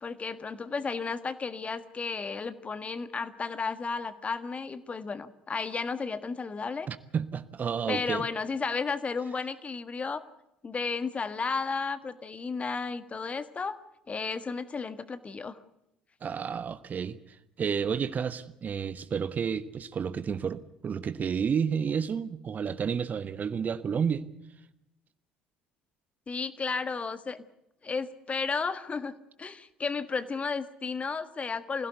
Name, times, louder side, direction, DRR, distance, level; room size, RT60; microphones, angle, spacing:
voice 1, 0.0-6.9 7.9-10.2 10.6-13.8 14.1-15.6 26.3-27.4 27.8-31.9, left 4 dB, 25° left, 1.5 m, -33 dB
voice 2, 6.9-8.3 16.2-24.3, right 7 dB, 35° right, 1.1 m, -31 dB
25.0 x 16.5 x 8.1 m
figure-of-eight pair, 60°, 5 cm